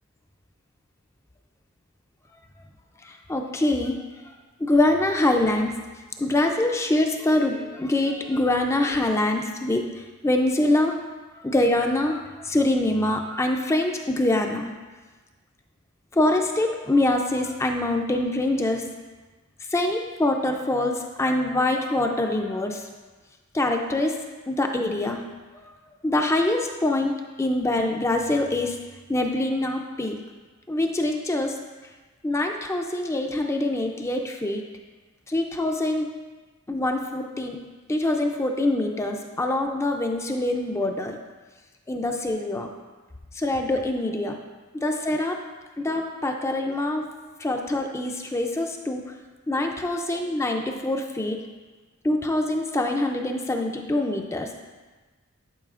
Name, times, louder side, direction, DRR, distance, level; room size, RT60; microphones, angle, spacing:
voice 1, 3.0-4.0 4.6-5.7 6.2-11.0 11.3-14.7 16.1-18.9 19.7-22.9 23.5-24.2 24.5-25.2 26.0-28.8 29.1-30.2 30.7-31.6 32.2-34.6 35.3-36.1 36.7-37.6 37.9-41.2 41.9-42.7 43.3-44.4 44.7-45.4 45.8-47.0 47.4-49.1 49.5-51.4 52.0-54.5, left 1 dB, 15° left, 3 dB, 0.4 m, -24 dB
10.5 x 4.8 x 2.4 m, 1.3 s
head